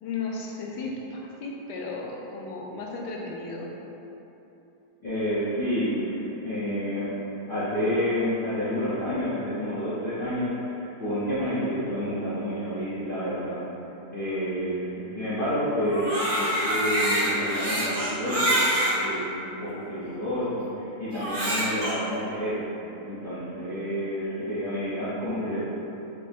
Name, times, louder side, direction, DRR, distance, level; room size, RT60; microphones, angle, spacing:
voice 1, 0.0-3.8, left 3 dB, 85° left, -1 dB, 1.2 m, -35 dB
voice 2, 5.0-7.1 7.5-13.6 14.1-18.6 18.9-25.6, equal, 40° left, -14 dB, 0.9 m, -29 dB
Crying sobbing, 15.8-19.0 19.7-19.8 21.1-21.9, right 1 dB, 80° right, 1.8 m, -26 dB
4.9 x 2.0 x 4.3 m, 3.0 s
omnidirectional pair, 1.8 m